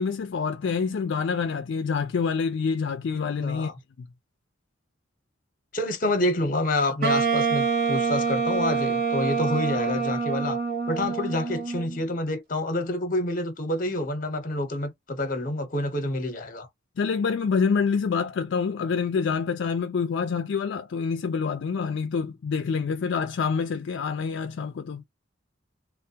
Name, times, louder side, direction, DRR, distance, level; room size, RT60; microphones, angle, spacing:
voice 1, 0.0-3.7 4.0-4.1 17.0-25.0, left 5 dB, 65° left, 0.4 m, -27 dB
voice 2, 3.4-3.7 5.7-10.6 10.9-16.7, left 1 dB, 45° left, 0.8 m, -28 dB
Wind instrument woodwind instrument, 7.0-12.0, right 5 dB, 50° right, 0.7 m, -26 dB
3.2 x 2.0 x 2.7 m
head